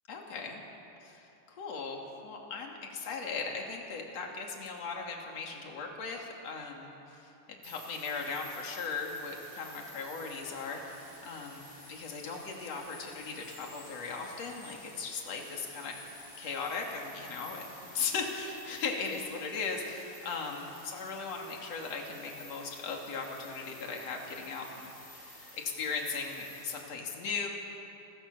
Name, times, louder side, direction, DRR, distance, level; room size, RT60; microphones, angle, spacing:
voice 1, 0.1-0.6 1.0-16.0 16.4-27.5, left 4 dB, 45° left, 0 dB, 3.7 m, -38 dB
sound 1, 7.6-26.8, left 1 dB, 30° left, 8.4 m, -51 dB
29.0 x 23.0 x 7.0 m, 3.0 s
omnidirectional pair, 4.3 m